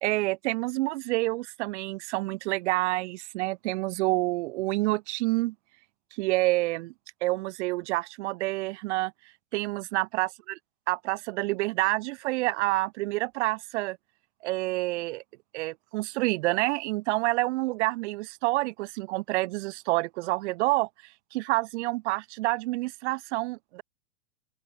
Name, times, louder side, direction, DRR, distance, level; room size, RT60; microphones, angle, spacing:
voice 1, 0.0-5.5 6.1-6.9 7.2-9.1 9.5-10.6 10.9-14.0 14.4-15.2 15.5-20.9 21.3-23.8, right 21 dB, 60° right, 2.1 m, -28 dB
open air
hypercardioid pair, 125°, 39 cm